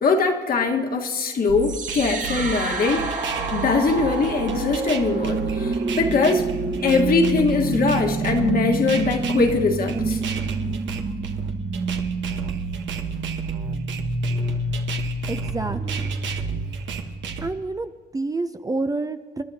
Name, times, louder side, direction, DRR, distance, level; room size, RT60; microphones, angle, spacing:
voice 1, 0.0-3.1 3.5-6.4 6.8-10.2, left 4 dB, 50° left, 2 dB, 1.5 m, -22 dB
sound 1, 1.5-17.5, right 5 dB, 80° right, 1.2 m, -33 dB
sound 2, 1.6-17.6, right 3 dB, 45° right, 1.3 m, -28 dB
voice 2, 15.3-16.1 17.4-19.4, right 3 dB, 20° right, 9 dB, 0.5 m, -29 dB
28.5 x 11.5 x 2.8 m, 1.5 s
cardioid pair, 115°, 19 cm